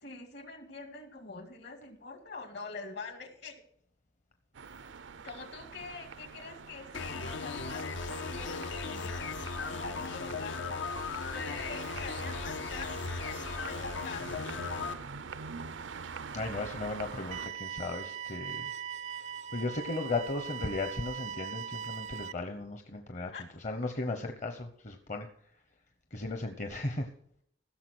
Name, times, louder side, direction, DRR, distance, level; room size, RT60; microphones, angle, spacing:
voice 1, 0.0-3.6 5.2-9.3 9.6-10.8 11.3-14.4 23.3-23.5, left 4 dB, 65° left, 6 dB, 2.1 m, -45 dB
sound 1, 4.5-17.5, right 5 dB, 85° right, 0.6 m, -45 dB
sound 2, 6.9-14.9, left 4 dB, 80° left, 0.9 m, -37 dB
voice 2, 16.3-18.7 19.5-25.3 26.1-27.1, left 2 dB, 40° left, 6 dB, 0.9 m, -36 dB
sound 3, 17.3-22.3, right 8 dB, 40° right, 0.4 m, -40 dB
16.0 x 6.7 x 6.2 m, 0.69 s
head